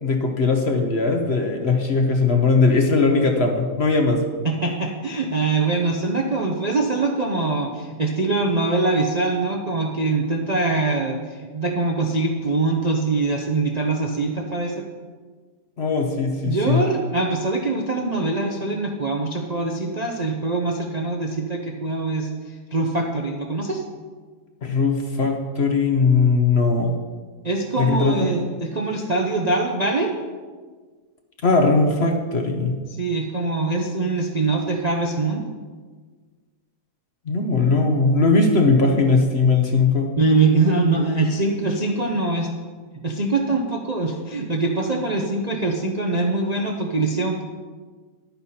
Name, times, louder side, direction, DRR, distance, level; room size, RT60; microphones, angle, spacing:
voice 1, 0.0-4.2 15.8-16.8 24.6-26.9 27.8-28.3 31.4-32.8 37.3-40.1, left 3 dB, 45° left, 3 dB, 1.1 m, -19 dB
voice 2, 4.4-14.8 16.4-23.8 27.4-30.1 33.0-35.5 40.2-42.5 43.0-47.4, right 3 dB, 40° right, 1 dB, 0.6 m, -23 dB
11.0 x 9.7 x 4.3 m, 1.5 s
omnidirectional pair, 1.8 m